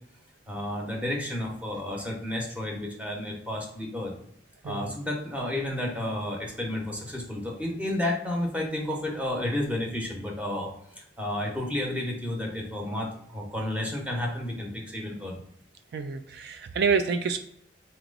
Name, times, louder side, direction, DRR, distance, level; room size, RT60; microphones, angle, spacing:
voice 1, 0.5-4.1 4.6-15.3, left 1 dB, 10° right, -1 dB, 0.9 m, -31 dB
voice 2, 15.9-17.4, right 5 dB, 65° right, 8 dB, 0.3 m, -27 dB
4.2 x 3.0 x 3.8 m, 0.70 s
head